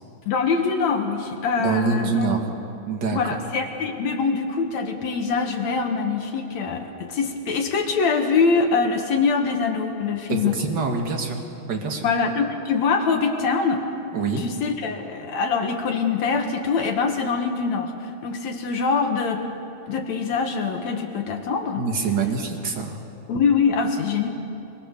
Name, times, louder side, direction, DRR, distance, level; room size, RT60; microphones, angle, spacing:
voice 1, 0.3-2.3 3.1-10.5 12.0-13.9 14.4-19.4 19.9-21.8 23.3-24.3, left 5 dB, 60° left, 4 dB, 2.3 m, -24 dB
voice 2, 1.6-2.4 2.9-3.4 10.3-11.4 11.7-12.1 14.1-14.4 21.8-23.0, right 4 dB, 40° right, 2 dB, 2.0 m, -25 dB
23.0 x 22.0 x 6.7 m, 2.7 s
omnidirectional pair, 3.9 m